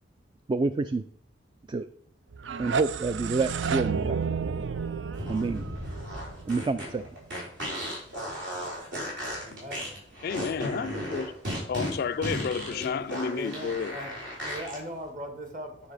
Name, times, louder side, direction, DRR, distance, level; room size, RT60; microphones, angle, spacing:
voice 1, 0.5-1.0 1.7-1.9 2.6-4.2 5.3-5.6 6.5-7.1, right 3 dB, 25° right, 0.3 m, -28 dB
sound 1, 2.3-7.2, right 6 dB, 80° right, 0.5 m, -32 dB
sound 2, 5.1-14.8, equal, 65° right, 4.3 m, -35 dB
voice 2, 9.4-10.0 12.7-13.0 13.3-14.1 14.4-15.9, equal, 45° right, 2.0 m, -40 dB
voice 3, 10.2-11.3 11.7-14.0, left 6 dB, 55° left, 0.4 m, -31 dB
9.5 x 6.2 x 5.0 m
head